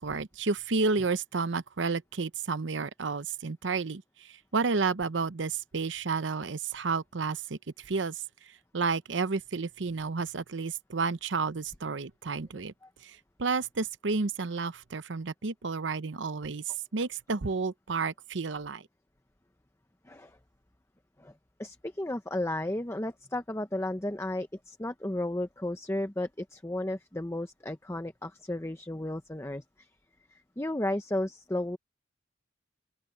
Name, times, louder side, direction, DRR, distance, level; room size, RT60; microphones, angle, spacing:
voice 1, 0.0-8.2 8.5-12.7 13.0-18.9, right 4 dB, 75° right, 0.8 m, -31 dB
voice 2, 20.0-20.4 21.2-21.3 21.6-29.9 30.3-31.8, left 1 dB, 15° left, 0.8 m, -34 dB
open air
head